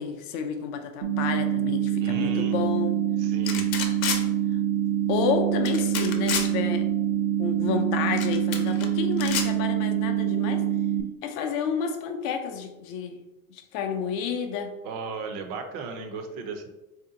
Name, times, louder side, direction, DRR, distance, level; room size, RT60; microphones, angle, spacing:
voice 1, 0.0-3.0 5.1-6.9 7.4-10.6 11.2-13.2 13.5-14.7, left 6 dB, 40° left, 6 dB, 0.5 m, -30 dB
sound 1, 1.0-11.0, right 11 dB, 80° right, 0.8 m, -25 dB
voice 2, 2.0-2.6 3.2-3.7 14.8-16.7, right 4 dB, 40° right, 6 dB, 0.5 m, -36 dB
sound 2, 3.5-4.2 5.6-6.5 8.2-8.9 9.2-9.5, left 7 dB, 80° left, 0.8 m, -29 dB
3.3 x 2.8 x 3.8 m, 1.0 s
supercardioid pair, 140°, 42 cm